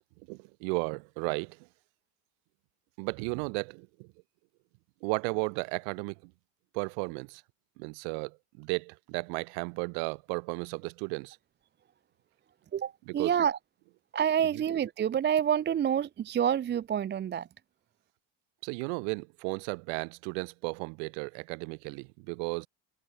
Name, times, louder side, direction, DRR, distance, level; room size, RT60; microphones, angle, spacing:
voice 1, 0.3-1.7 3.0-4.1 5.0-6.3 6.7-7.4 7.8-11.4 13.1-13.3 14.5-14.6 18.6-22.7, right 40 dB or more, 70° right, 0.9 m, -34 dB
voice 2, 12.7-13.6 14.1-17.5, right 9 dB, 25° right, 0.6 m, -28 dB
supercardioid pair, 90°, 40 cm